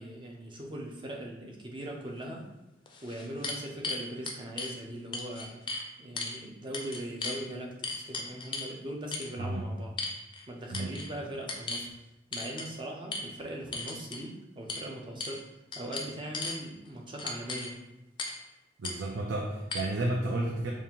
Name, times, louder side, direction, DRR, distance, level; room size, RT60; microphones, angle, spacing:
voice 1, 0.0-2.5 3.0-5.6 6.0-10.0 10.5-11.9 12.3-15.5 15.7-17.8, right 1 dB, 25° right, 0 dB, 0.6 m, -40 dB
sound 1, 2.2-2.3 2.9-4.7 5.1-5.8 6.2-6.4 6.7-7.4 7.8-8.7 9.1-9.3 10.0-10.4 10.7-11.1 11.5-11.9 12.3-12.7 13.1-13.2 13.7-14.2 14.7-14.8 15.2-15.4 15.7-16.6 17.2-17.7 18.2-18.4 18.8-19.0 19.7-19.8, left 3 dB, 25° left, 0.4 m, -36 dB
voice 2, 18.8-20.7, right 2 dB, 85° right, 0 dB, 0.5 m, -32 dB
5.2 x 2.4 x 2.9 m, 0.95 s
head